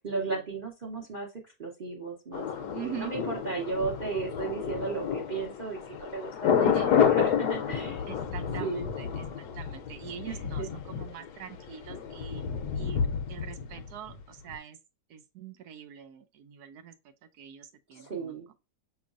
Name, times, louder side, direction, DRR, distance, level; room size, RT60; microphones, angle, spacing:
voice 1, 0.0-1.3 1.6-6.6 6.9-8.0 8.6-8.9 10.3-10.7 17.9-18.5, right 4 dB, 40° right, 0.8 m, -35 dB
Thunder, 2.3-14.2 14.5-14.6, left 7 dB, 70° left, 1.1 m, -30 dB
voice 2, 2.7-3.1 6.6-6.9 8.1-12.4 12.8-13.0 13.3-14.8 15.1-16.9 17.2-18.3, right 9 dB, 70° right, 1.1 m, -43 dB
6.1 x 3.1 x 2.4 m
omnidirectional pair, 1.9 m